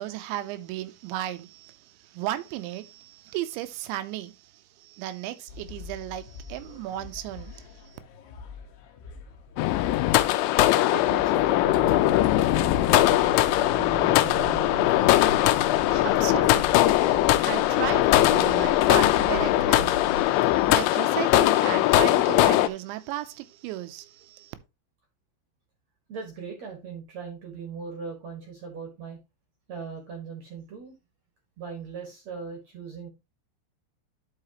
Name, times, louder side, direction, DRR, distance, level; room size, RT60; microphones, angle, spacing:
voice 1, 0.0-8.0 15.5-24.6, right 13 dB, 90° right, 3.0 m, -35 dB
sound 1, 5.5-20.9, left 5 dB, 70° left, 2.8 m, -45 dB
sound 2, 9.6-22.7, left 15 dB, 90° left, 3.0 m, -21 dB
voice 2, 10.9-15.1 26.1-29.2 29.7-30.9 31.6-33.1, right 5 dB, 55° right, 2.3 m, -39 dB
sound 3, 11.6-20.2, left 3 dB, 55° left, 1.7 m, -37 dB
11.0 x 5.7 x 3.0 m
omnidirectional pair, 5.3 m